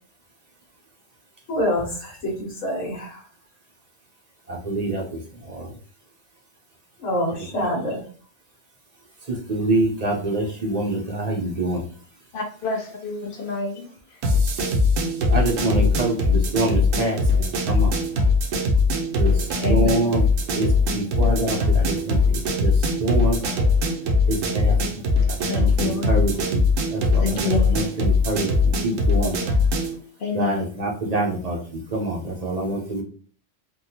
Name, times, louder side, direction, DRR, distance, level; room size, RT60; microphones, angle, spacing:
voice 1, 1.5-3.3 7.0-8.0, equal, 80° left, 1.2 m, -26 dB
voice 2, 4.5-5.7 9.3-11.8 15.3-18.0 19.1-20.2 20.5-23.4 24.3-24.8 25.6-26.6 26.9-29.3 30.3-33.0, right 2 dB, 40° right, 0.6 m, -26 dB
voice 3, 12.3-14.2 19.6-20.1 23.6-23.7 24.6-24.7 25.5-26.1 27.1-28.0 29.2-29.7 30.2-30.6, left 4 dB, 60° left, 0.6 m, -29 dB
sound 1, 14.2-30.0, left 3 dB, 80° right, 1.0 m, -21 dB
3.5 x 2.3 x 2.8 m
omnidirectional pair, 1.3 m